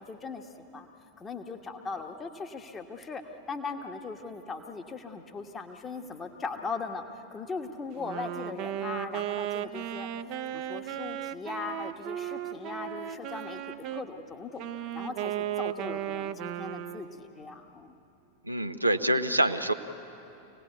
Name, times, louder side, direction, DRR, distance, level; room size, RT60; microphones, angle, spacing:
voice 1, 0.1-0.9 1.2-3.2 3.5-10.1 10.5-18.0, left 4 dB, 20° left, 4 dB, 1.4 m, -39 dB
Wind instrument woodwind instrument, 7.9-14.1 14.6-17.2, right 11 dB, 40° right, 0.8 m, -35 dB
voice 2, 18.4-19.7, right 1 dB, 85° right, 7 dB, 0.8 m, -26 dB
26.0 x 18.0 x 9.2 m, 2.9 s
figure-of-eight pair, 90°, 0 cm